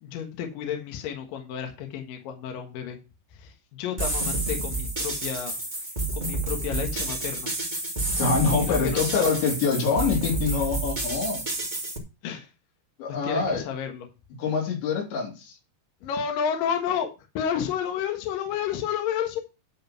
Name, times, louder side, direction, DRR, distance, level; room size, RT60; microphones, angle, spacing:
voice 1, 0.0-3.0 3.3-7.5 8.6-9.4 12.2-12.5 13.1-14.1 16.0-17.1 17.3-19.4, left 8 dB, 60° left, 4 dB, 2.8 m, -31 dB
sound 1, 4.0-12.0, right 2 dB, 40° right, 0.6 m, -29 dB
voice 2, 8.2-11.4 13.0-13.6 14.4-15.5, left 5 dB, 80° left, 1 dB, 5.1 m, -25 dB
11.0 x 5.1 x 5.9 m, 0.29 s
omnidirectional pair, 5.1 m